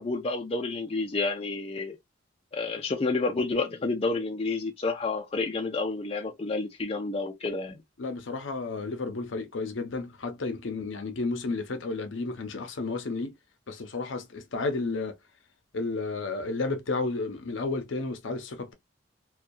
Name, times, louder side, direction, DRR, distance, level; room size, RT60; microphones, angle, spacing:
voice 1, 0.0-2.0 2.5-7.8, left 3 dB, 30° left, 0.4 m, -30 dB
voice 2, 8.0-13.3 13.7-15.1 15.7-18.7, left 3 dB, 75° left, 0.6 m, -32 dB
2.6 x 2.2 x 2.3 m
head